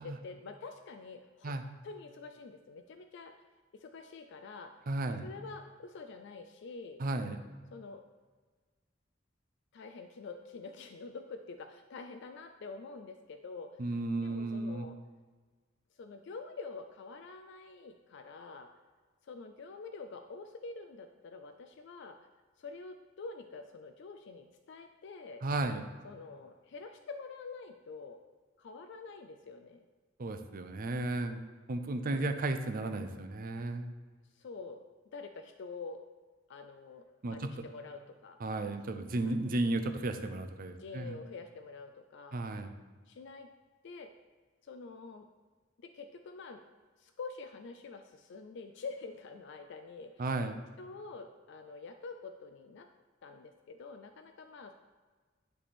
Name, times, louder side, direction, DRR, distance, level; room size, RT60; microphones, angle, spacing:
voice 1, 0.0-1.6 1.8-3.3 3.7-4.7 5.2-7.0 7.7-8.0 9.7-14.0 14.2-15.0 15.9-18.7 19.2-22.2 22.6-25.4 26.0-28.2 28.6-29.8 32.1-32.3 34.3-34.8 35.1-36.0 36.5-37.0 37.3-38.8 39.2-39.4 40.8-42.4 43.1-43.5 43.8-44.1 44.6-45.3 45.8-46.6 47.0-50.4 50.8-52.9 53.2-54.7, left 4 dB, 60° left, 7 dB, 0.4 m, -47 dB
voice 2, 4.9-5.2 7.0-7.4 13.8-14.9 25.4-25.8 30.2-31.4 31.7-33.8 37.2-37.5 38.4-41.2 42.3-42.7 50.2-50.6, right 2 dB, 45° right, 7 dB, 0.5 m, -34 dB
9.9 x 3.4 x 4.2 m, 1.4 s
head